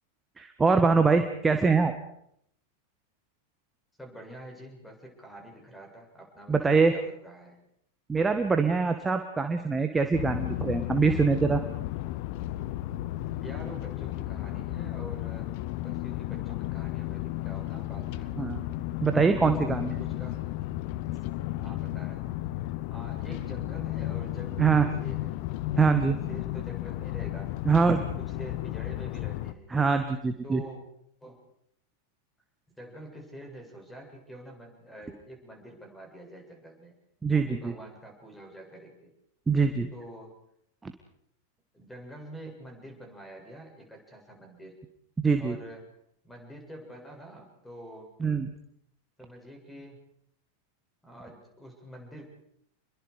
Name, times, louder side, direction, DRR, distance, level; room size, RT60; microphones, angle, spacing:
voice 1, 0.4-1.9 6.5-6.9 8.1-11.6 18.4-18.6 19.0-19.9 24.6-24.9 25.8-26.2 27.6-28.0 29.7-30.6 37.2-37.7 39.5-39.9 40.8-40.9 45.2-45.6 48.2-48.5, right 4 dB, 15° right, 7 dB, 1.6 m, -23 dB
voice 2, 4.0-7.6 13.4-15.5 15.8-18.5 19.3-20.5 21.6-22.4 22.9-25.3 25.6-27.6 27.9-29.7 30.4-30.8 31.2-31.4 32.8-36.9 37.3-39.1 39.9-40.3 41.7-44.8 45.4-45.8 46.2-48.1 49.2-50.0 51.0-52.3, right 1 dB, 5° left, 2 dB, 7.6 m, -46 dB
sound 1, 10.1-29.5, left 15 dB, 50° left, 0.9 m, -33 dB
29.0 x 22.5 x 5.0 m, 0.72 s
figure-of-eight pair, 90°, 0 cm